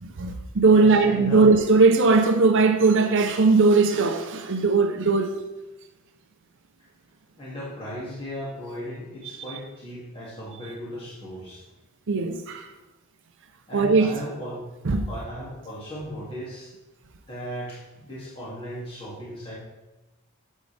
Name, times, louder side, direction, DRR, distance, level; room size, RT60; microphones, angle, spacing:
voice 1, 0.0-5.3 12.1-12.7 13.7-14.2 14.9-15.1, right 3 dB, 60° right, 0.6 m, -19 dB
voice 2, 0.7-1.5 7.4-11.6 13.7-14.6 15.1-16.7 17.3-19.5, equal, 25° left, 2.4 m, -36 dB
9.1 x 7.4 x 3.4 m
head